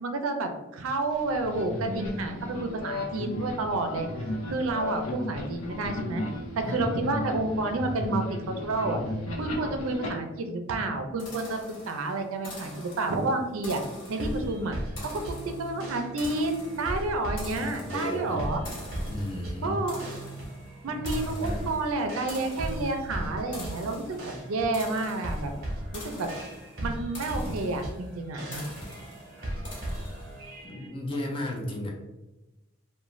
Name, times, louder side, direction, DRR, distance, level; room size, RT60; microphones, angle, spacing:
voice 1, 0.0-4.1 4.5-6.2 6.6-9.0 9.3-11.6 11.9-13.8 14.1-14.8 15.3-18.6 19.6-20.0 20.8-25.5 25.9-26.3 26.8-28.6, right 2 dB, 85° right, 6 dB, 0.4 m, -30 dB
sound 1, 1.1-10.1, left 1 dB, 90° left, 0.6 m, -34 dB
sound 2, 11.2-30.6, left 1 dB, 60° left, 0.9 m, -45 dB
sound 3, 14.2-30.9, right 1 dB, 50° right, 0.8 m, -37 dB
voice 2, 17.5-18.5 19.1-19.8 20.9-21.7 30.6-31.9, left 1 dB, 25° left, 0 dB, 0.4 m, -34 dB
2.4 x 2.1 x 3.0 m, 1.0 s
head